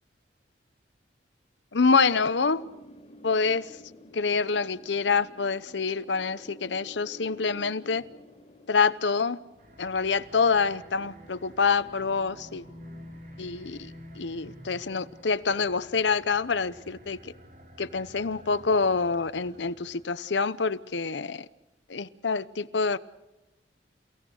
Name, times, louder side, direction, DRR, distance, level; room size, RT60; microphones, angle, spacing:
voice 1, 1.7-2.6 3.2-3.8 4.1-8.0 8.7-9.4 9.8-12.6 13.4-17.3 17.8-21.5 21.9-23.0, left 5 dB, 80° left, 0.8 m, -26 dB
Wind, 1.8-10.5, left 1 dB, 35° left, 2.4 m, -51 dB
sound 1, 9.5-20.2, equal, 50° right, 6.2 m, -49 dB
29.5 x 17.0 x 6.5 m
head